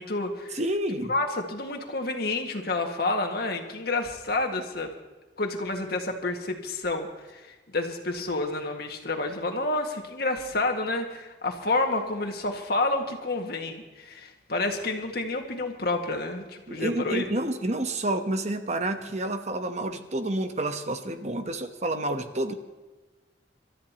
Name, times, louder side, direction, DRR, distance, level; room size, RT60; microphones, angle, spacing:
voice 1, 0.0-0.6 1.1-4.9 5.4-17.2, left 2 dB, 60° left, 3 dB, 1.9 m, -29 dB
voice 2, 0.5-1.1 16.7-22.5, right 1 dB, 40° right, 7 dB, 1.0 m, -29 dB
27.5 x 13.5 x 3.0 m, 1.2 s
head